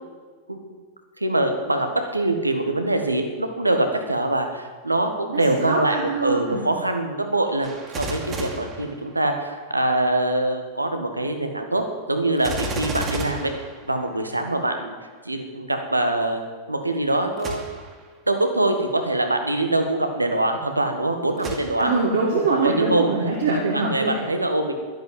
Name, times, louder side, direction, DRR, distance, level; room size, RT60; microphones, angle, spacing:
voice 1, 1.2-11.8 12.1-13.5 13.9-14.9 15.2-16.4 16.7-17.7 18.3-21.9 22.6-23.1 23.5-24.7, right 2 dB, 85° right, 5 dB, 1.7 m, -24 dB
voice 2, 5.3-6.7 21.8-24.3, right 3 dB, 65° right, -3 dB, 2.5 m, -24 dB
Gunshot gunfire, 7.6-9.6 12.4-14.5 17.4-18.0 18.7-18.8 21.4-22.2 22.7-22.8, right 1 dB, 30° right, 2.6 m, -33 dB
12.0 x 11.5 x 7.6 m, 1.5 s
figure-of-eight pair, 90°, 0 cm